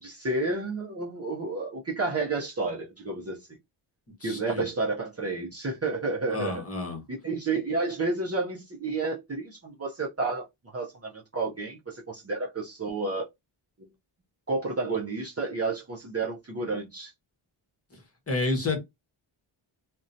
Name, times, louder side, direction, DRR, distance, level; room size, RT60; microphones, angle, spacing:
voice 1, 0.0-3.5 4.2-6.6 7.1-10.5 10.7-13.3 14.5-17.1, right 3 dB, 30° right, 0.5 m, -31 dB
voice 2, 4.2-4.7 6.3-7.0 17.9-18.0 18.3-18.8, left 3 dB, 30° left, 0.8 m, -30 dB
2.6 x 2.1 x 2.5 m
wide cardioid pair, 145°, 50 cm